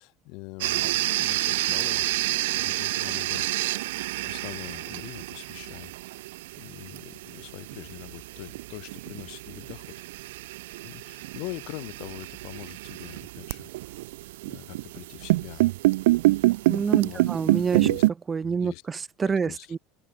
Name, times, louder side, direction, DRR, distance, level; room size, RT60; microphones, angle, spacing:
voice 1, 0.0-2.1 2.5-5.9 6.6-10.0 10.8-13.7 14.1-15.7 16.2-17.3 17.7-18.0 18.4-18.8 19.2-19.7, left 30 dB, 65° left, 4.2 m, -43 dB
sound 1, 0.6-18.1, right 18 dB, 90° right, 0.8 m, -28 dB
voice 2, 16.7-17.9 18.3-19.8, right 5 dB, 20° right, 1.1 m, -28 dB
supercardioid pair, 130°, 0 cm